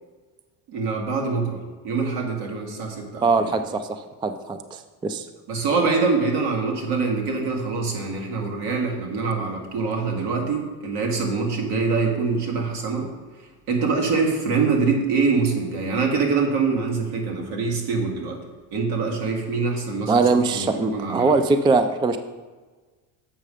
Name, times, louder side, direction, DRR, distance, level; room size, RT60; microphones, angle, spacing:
voice 1, 0.7-3.6 5.5-13.1 13.7-18.4 18.7-21.3, right 4 dB, 70° right, 1 dB, 2.2 m, -24 dB
voice 2, 3.2-5.3 20.1-22.2, right 3 dB, 10° right, 9 dB, 0.3 m, -22 dB
7.5 x 5.6 x 4.9 m, 1.3 s
supercardioid pair, 100°, 44 cm